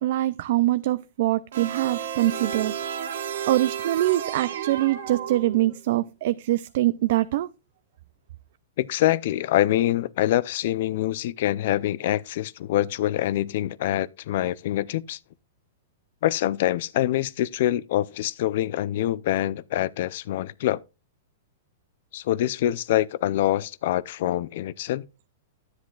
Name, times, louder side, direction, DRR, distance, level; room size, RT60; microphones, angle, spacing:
voice 1, 0.0-2.7 3.5-7.5, right 15 dB, 55° right, 0.3 m, -24 dB
sound 1, 1.5-5.9, right 9 dB, 75° right, 1.9 m, -32 dB
voice 2, 8.8-15.2 16.2-20.8 22.1-25.1, left 13 dB, 55° left, 0.5 m, -25 dB
10.5 x 9.6 x 2.4 m
hypercardioid pair, 160°, 0 cm